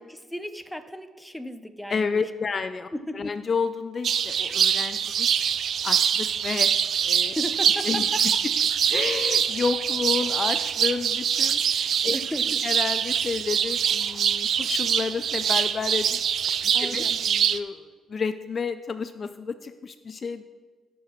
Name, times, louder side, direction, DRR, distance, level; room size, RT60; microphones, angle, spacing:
voice 1, 0.1-2.2 2.9-3.4 7.2-8.4 12.1-12.7 16.7-17.2, left 1 dB, 5° left, 9 dB, 0.7 m, -35 dB
voice 2, 1.9-2.9 3.1-5.3 5.8-6.7 7.0-7.4 7.9-8.1 8.9-12.2 12.6-16.2 16.8-20.4, left 5 dB, 40° left, 11 dB, 0.4 m, -30 dB
sound 1, 4.0-17.6, right 8 dB, 65° right, 0.4 m, -24 dB
17.0 x 6.6 x 3.1 m, 1.4 s
cardioid pair, 90°, 0 cm